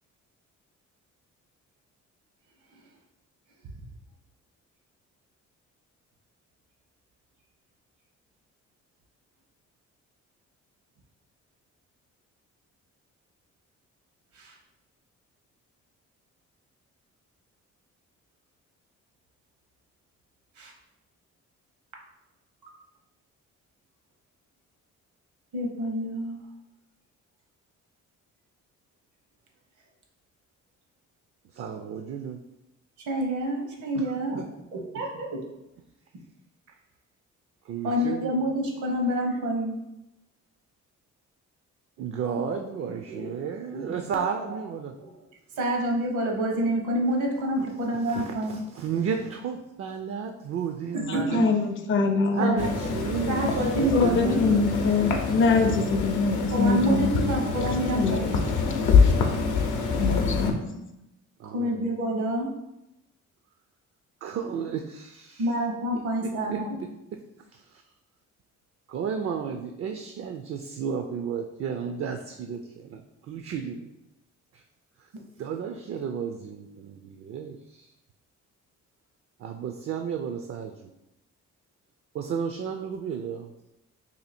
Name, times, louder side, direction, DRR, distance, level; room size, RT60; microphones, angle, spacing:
voice 1, 25.5-26.4 33.1-34.4 34.7-35.4 37.8-39.7 42.8-43.3 43.7-43.9 45.0-45.1 45.6-48.6 50.9-51.5 52.4-52.7 53.3-54.4 56.5-58.8 61.4-62.5 65.4-66.8, right 1 dB, 80° right, 0 dB, 1.0 m, -28 dB
voice 2, 31.5-32.4 33.9-34.1 36.7-36.8 37.6-38.4 42.0-44.9 47.6-47.7 48.1-51.6 52.3-54.9 61.4-61.9 64.2-65.5 65.9-66.0 66.5-66.6 67.5-67.8 68.9-73.9 74.5-74.6 75.0-75.1 75.4-77.9 79.4-80.9 82.1-83.7, right 7 dB, 50° right, 5 dB, 0.4 m, -33 dB
voice 3, 51.1-52.6 53.9-57.1 57.7-58.3 59.0-59.1 60.0-60.8, left 4 dB, 40° left, 5 dB, 0.5 m, -24 dB
sound 1, 52.6-60.5, left 5 dB, 85° left, 0.6 m, -25 dB
2.8 x 2.7 x 4.2 m, 0.91 s
cardioid pair, 90°, 30 cm